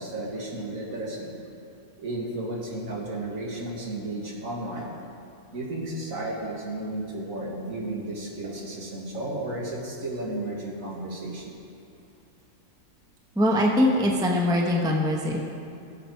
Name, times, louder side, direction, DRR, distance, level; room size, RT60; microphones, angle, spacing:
voice 1, 0.0-1.3 2.0-4.9 5.5-11.6, right 1 dB, 60° right, -2 dB, 2.2 m, -33 dB
voice 2, 13.3-15.4, left 1 dB, 5° right, 0 dB, 0.9 m, -22 dB
18.0 x 7.6 x 4.6 m, 2.5 s
omnidirectional pair, 1.6 m